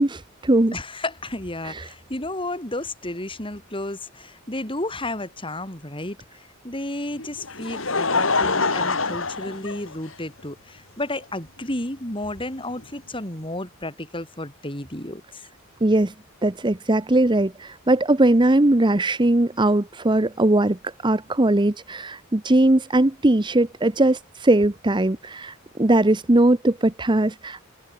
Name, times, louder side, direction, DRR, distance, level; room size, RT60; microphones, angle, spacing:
voice 1, 0.0-0.7 1.6-1.9 15.8-16.1 16.4-20.8 21.0-27.6, right 1 dB, 20° right, 0.9 m, -20 dB
voice 2, 0.7-15.4, left 1 dB, 25° left, 7.6 m, -32 dB
Laughter, 7.2-10.4 11.2-11.3 12.8-12.9, left 3 dB, 70° left, 5.1 m, -25 dB
head